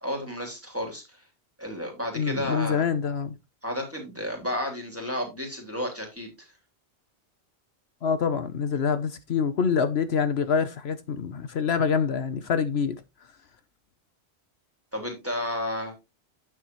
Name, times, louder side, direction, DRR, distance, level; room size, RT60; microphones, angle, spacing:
voice 1, 0.0-1.2 1.6-2.8 3.6-6.5 14.9-15.9, equal, 10° right, 3.2 m, -32 dB
voice 2, 2.2-3.4 8.0-13.0, left 6 dB, 70° left, 1.0 m, -26 dB
9.3 x 7.9 x 3.1 m
omnidirectional pair, 1.1 m